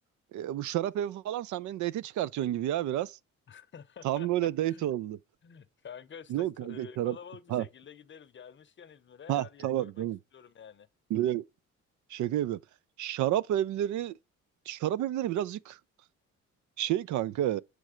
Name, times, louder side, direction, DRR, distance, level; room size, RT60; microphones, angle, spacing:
voice 1, 0.3-3.2 4.0-5.2 6.3-7.2 7.5-7.6 9.3-10.2 11.1-11.4 12.1-12.6 13.0-14.1 14.7-15.8 16.8-17.6, right 13 dB, 75° right, 0.5 m, -30 dB
voice 2, 3.5-4.9 5.4-10.1 10.3-10.9, left 7 dB, 40° left, 0.7 m, -49 dB
7.6 x 3.2 x 4.9 m
cardioid pair, 90°, 30 cm